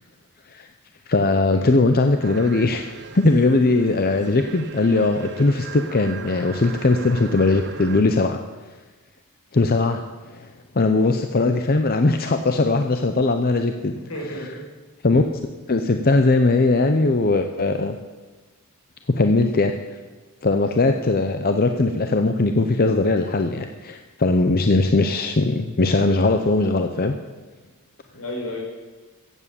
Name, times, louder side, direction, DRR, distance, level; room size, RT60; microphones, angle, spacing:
voice 1, 1.1-2.8 3.1-8.4 9.5-10.0 10.3-10.5 10.7-13.9 15.0-15.2 15.7-18.0 19.1-20.0 20.4-27.1, left 3 dB, 40° left, 6 dB, 0.7 m, -19 dB
sound 1, 2.2-8.0, right 5 dB, 50° right, 1.0 m, -39 dB
voice 2, 14.0-14.7 28.1-28.6, left 1 dB, 75° left, 1 dB, 4.4 m, -33 dB
14.5 x 8.3 x 8.4 m, 1.3 s
head